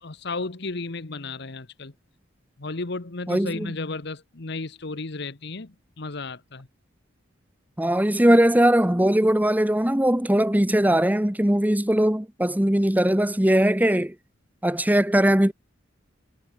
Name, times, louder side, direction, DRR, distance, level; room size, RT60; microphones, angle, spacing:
voice 1, 0.0-1.9 2.6-6.7, left 3 dB, 60° left, 1.3 m, -33 dB
voice 2, 3.3-3.7 7.8-14.1 14.6-15.5, right 1 dB, 10° right, 1.1 m, -20 dB
head